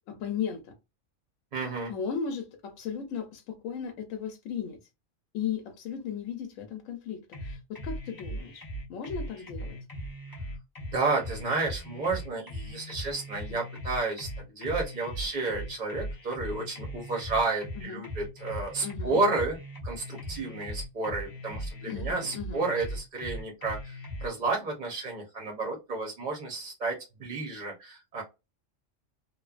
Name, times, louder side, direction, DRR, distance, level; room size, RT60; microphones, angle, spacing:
voice 1, 0.1-0.7 1.9-4.8 5.3-9.8 13.5-13.6 17.8-18.0 18.8-19.2 21.9-22.7, left 7 dB, 85° left, 1.0 m, -36 dB
voice 2, 1.5-1.9 10.9-19.6 19.8-28.2, right 3 dB, 40° right, 0.7 m, -31 dB
sound 1, 7.3-24.3, equal, 25° left, 0.6 m, -39 dB
3.1 x 2.1 x 2.4 m
omnidirectional pair, 1.3 m